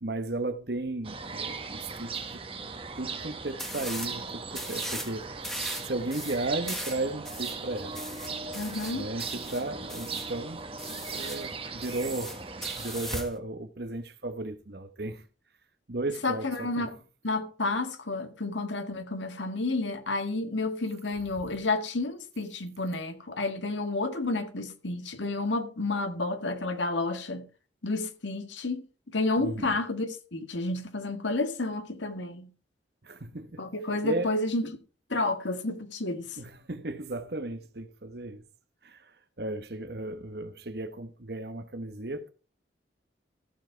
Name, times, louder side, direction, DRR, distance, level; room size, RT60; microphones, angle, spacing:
voice 1, 0.0-2.5 3.0-5.2 5.9-7.9 8.9-10.6 10.9-12.4 12.8-15.2 15.9-16.9 29.4-29.8 33.0-33.6 34.0-34.3 36.4-38.5 38.8-39.0 39.4-42.3, right 2 dB, 55° right, 1.1 m, -35 dB
sound 1, 1.0-13.2, right 4 dB, 30° right, 1.3 m, -38 dB
sound 2, 3.6-4.2 4.5-5.1 5.4-10.3 10.8-11.5 11.8-13.4, equal, ahead, 1.3 m, -39 dB
voice 2, 8.5-9.1 16.2-16.9 17.2-27.4 27.8-28.8 29.1-32.5 33.6-34.7 35.1-36.3, left 2 dB, 80° left, 1.8 m, -30 dB
14.0 x 7.4 x 4.5 m
head